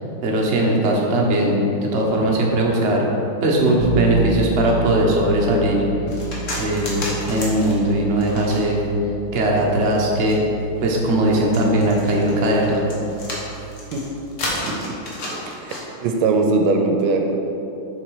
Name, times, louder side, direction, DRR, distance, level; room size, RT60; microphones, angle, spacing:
voice 1, 0.2-1.6 1.9-3.1 3.4-5.8 6.6-8.9 9.3-10.4 10.8-12.8, right 1 dB, 45° right, -2 dB, 0.9 m, -19 dB
Bass guitar, 3.8-13.6, right 3 dB, 65° right, 1.4 m, -30 dB
sound 1, 6.1-8.9 9.5-15.8, left 1 dB, 40° left, 1.4 m, -32 dB
voice 2, 14.6-14.9 15.4-15.7 16.0-17.4, right 3 dB, 80° right, 3 dB, 1.4 m, -20 dB
7.1 x 4.6 x 4.7 m, 2.9 s
omnidirectional pair, 2.3 m